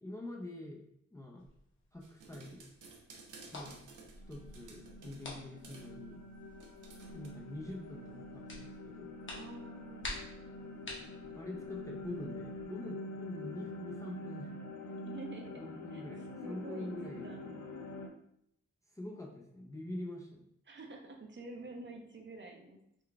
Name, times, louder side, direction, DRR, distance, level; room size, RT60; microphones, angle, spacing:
voice 1, 0.0-0.8 1.1-1.4 1.9-2.6 3.5-3.8 4.3-6.2 7.1-9.1 11.3-14.5 15.6-17.4 18.9-20.5, left 1 dB, 10° left, -1 dB, 0.4 m, -45 dB
sound 1, 1.4-12.7, left 1 dB, 40° left, 1.0 m, -51 dB
sound 2, 2.0-5.3 5.6-5.9 6.6-7.3, right 3 dB, 90° right, 0.7 m, -55 dB
sound 3, 3.8-18.1, left 2 dB, 70° left, 0.6 m, -46 dB
voice 2, 9.3-10.1 15.0-17.6 20.7-22.8, right 2 dB, 40° right, 2 dB, 0.6 m, -48 dB
3.8 x 2.3 x 3.3 m, 0.74 s
wide cardioid pair, 110°, 30 cm